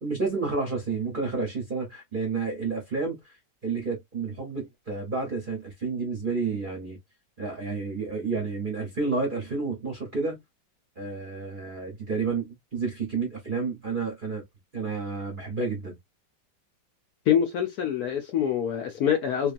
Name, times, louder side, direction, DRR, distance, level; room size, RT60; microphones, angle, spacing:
voice 1, 0.0-3.3 3.6-7.0 7.4-10.4 11.0-14.4 14.7-16.0, right 4 dB, 40° right, 0.8 m, -30 dB
voice 2, 17.3-19.5, left 9 dB, 70° left, 1.0 m, -25 dB
2.9 x 2.4 x 2.4 m
omnidirectional pair, 2.0 m